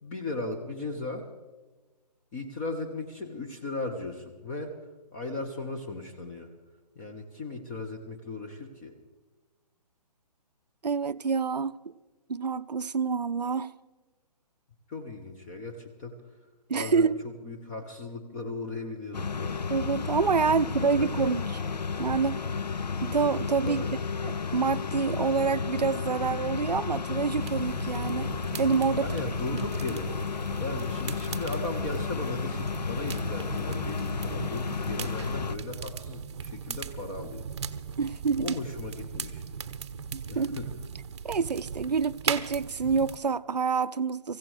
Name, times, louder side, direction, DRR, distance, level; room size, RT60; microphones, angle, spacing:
voice 1, 0.0-1.3 2.3-4.8 5.1-6.5 6.9-8.9 14.9-16.2 16.7-19.6 20.5-20.6 20.8-21.4 23.7-24.0 29.0-30.2 30.6-37.5 38.4-39.4 40.3-40.7, left 2 dB, 20° left, 1.0 m, -37 dB
voice 2, 10.8-11.7 12.3-13.7 16.7-17.2 19.7-21.6 22.0-22.4 23.0-23.8 24.2-28.3 28.6-29.1 38.0-38.6 40.1-40.6 41.2-44.4, right 5 dB, 75° right, 0.5 m, -27 dB
sound 1, 19.1-35.6, left 5 dB, 75° left, 0.6 m, -32 dB
sound 2, 27.4-43.2, right 6 dB, 40° right, 0.8 m, -38 dB
25.0 x 15.5 x 3.3 m
figure-of-eight pair, 135°, 21 cm